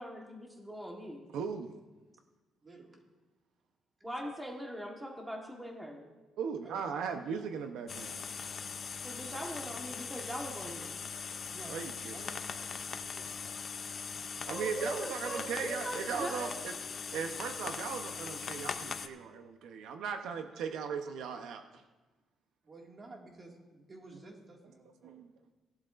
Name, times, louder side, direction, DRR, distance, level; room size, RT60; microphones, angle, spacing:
voice 1, 0.0-1.3 4.0-6.1 9.0-11.0 14.5-16.6, equal, 5° right, 0 dB, 1.3 m, -41 dB
voice 2, 1.3-1.7 6.4-8.3 11.7-12.2 14.5-16.7 17.1-21.8 25.0-25.3, right 6 dB, 80° right, 6 dB, 0.8 m, -38 dB
voice 3, 2.6-3.0 6.6-7.3 9.4-9.8 11.5-13.6 22.6-25.3, right 2 dB, 25° right, 0 dB, 2.0 m, -53 dB
sound 1, 7.9-19.1, left 6 dB, 35° left, 0.5 m, -40 dB
18.0 x 11.5 x 2.5 m, 1.2 s
cardioid pair, 165°, 0 cm